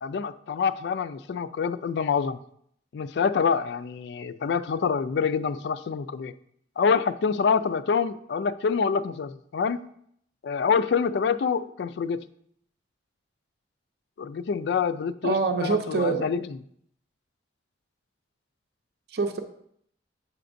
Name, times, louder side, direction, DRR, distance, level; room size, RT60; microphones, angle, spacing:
voice 1, 0.0-2.4 2.9-6.3 6.8-9.8 10.4-12.3 14.2-16.5, left 6 dB, 60° left, 14 dB, 0.3 m, -26 dB
voice 2, 15.2-16.3 19.1-19.4, right 4 dB, 55° right, 7 dB, 0.5 m, -25 dB
7.7 x 5.8 x 2.6 m, 0.68 s
head